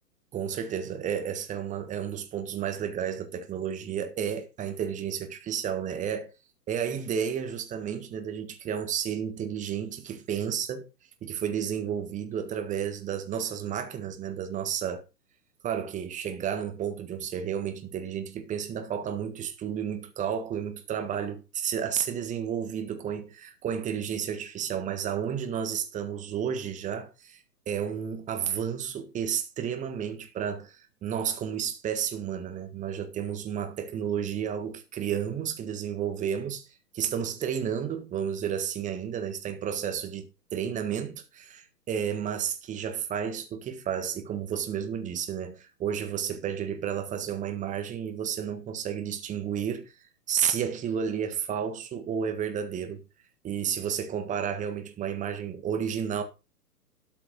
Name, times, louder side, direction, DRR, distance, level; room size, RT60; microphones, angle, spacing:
voice 1, 0.3-6.3 6.7-10.9 11.2-15.0 15.6-27.4 27.7-36.7 36.9-49.9 50.3-53.0 53.4-56.2, right 8 dB, 15° right, 1.6 m, -32 dB
12.5 x 5.6 x 5.2 m
figure-of-eight pair, 125°, 49 cm